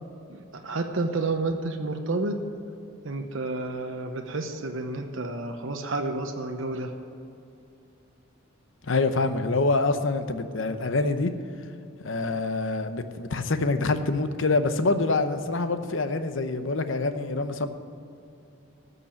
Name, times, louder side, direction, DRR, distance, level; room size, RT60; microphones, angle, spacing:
voice 1, 0.3-2.4 3.0-6.9, right 2 dB, 65° right, 4 dB, 0.9 m, -30 dB
voice 2, 8.8-11.3 12.0-17.7, left 3 dB, 65° left, 10 dB, 0.8 m, -26 dB
13.5 x 6.8 x 8.8 m, 2.7 s
head